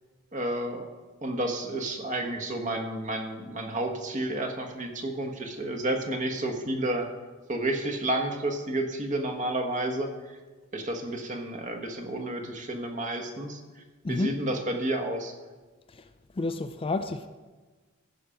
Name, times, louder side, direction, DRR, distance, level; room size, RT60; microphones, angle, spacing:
voice 1, 0.3-0.9 1.2-7.1 7.5-10.4 10.7-13.8 14.1-15.3, right 1 dB, 35° right, 1.3 m, -31 dB
voice 2, 14.0-14.4 15.9-16.1 16.3-17.3, left 2 dB, 25° left, 0.4 m, -30 dB
15.0 x 5.0 x 5.7 m
head